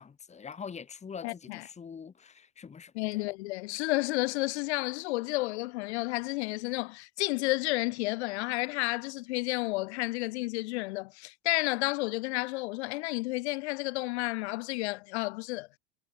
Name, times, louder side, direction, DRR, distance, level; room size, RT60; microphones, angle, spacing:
voice 1, 0.0-3.2, left 6 dB, 20° left, 3.0 m, -44 dB
voice 2, 1.2-1.7 2.9-15.8, left 22 dB, 65° left, 3.9 m, -31 dB
supercardioid pair, 115°, 35 cm